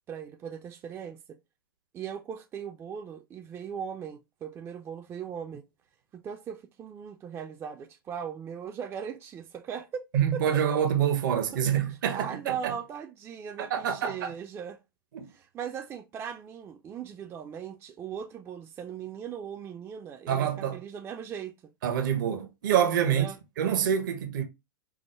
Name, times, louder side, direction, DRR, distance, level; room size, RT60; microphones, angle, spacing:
voice 1, 0.1-1.4 1.9-5.7 6.1-10.0 10.3-10.6 11.3-11.7 12.1-14.8 15.3-21.7 23.1-23.4, right 7 dB, 20° right, 0.4 m, -39 dB
voice 2, 10.1-12.7 13.6-14.3 15.1-15.3 20.3-20.8 21.8-23.3 23.6-24.4, right 9 dB, 60° right, 0.8 m, -26 dB
4.6 x 2.0 x 3.1 m
hypercardioid pair, 105°, 12 cm